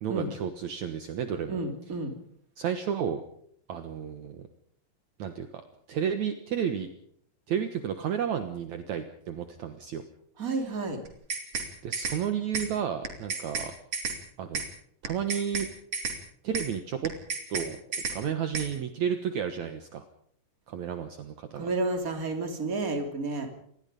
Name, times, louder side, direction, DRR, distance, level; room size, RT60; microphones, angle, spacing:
voice 1, 0.0-1.6 2.6-3.2 3.7-4.5 5.2-5.6 5.9-6.9 7.5-10.0 10.5-10.6 11.8-13.7 14.4-14.6 15.0-15.7 16.4-17.1 17.5-17.8 18.1-20.0 20.7-21.7, right 8 dB, 65° right, 7 dB, 2.4 m, -32 dB
voice 2, 1.5-2.1 10.4-11.0 21.6-23.5, right 3 dB, 25° right, 5 dB, 3.2 m, -31 dB
sound 1, 11.1-11.7 11.9-12.2 12.5-12.7 13.0-13.7 13.9-14.2 14.5-14.7 15.0-15.7 15.9-16.2 16.5-16.7 17.0-17.7 17.9-18.2 18.5-18.7, right 4 dB, 45° right, 4.4 m, -31 dB
27.5 x 20.0 x 5.3 m, 0.67 s
omnidirectional pair, 4.0 m